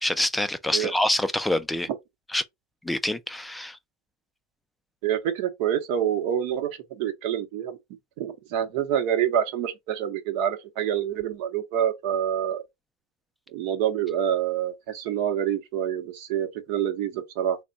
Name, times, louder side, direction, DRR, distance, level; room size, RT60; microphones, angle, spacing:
voice 1, 0.0-1.9 2.3-2.4 2.8-3.8, left 1 dB, 5° left, 0.3 m, -26 dB
voice 2, 5.0-7.8 8.2-12.6 13.5-17.6, right 9 dB, 60° right, 0.8 m, -27 dB
3.3 x 2.1 x 3.8 m
supercardioid pair, 140°, 0 cm